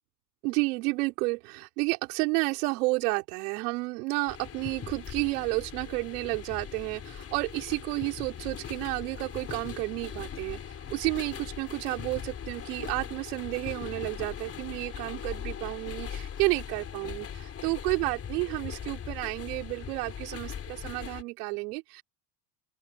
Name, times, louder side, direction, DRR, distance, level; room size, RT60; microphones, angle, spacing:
voice 1, 0.4-22.0, right 26 dB, 75° right, 5.3 m, -31 dB
sound 1, 4.3-21.2, left 8 dB, 30° left, 3.8 m, -40 dB
open air
supercardioid pair, 110°, 45 cm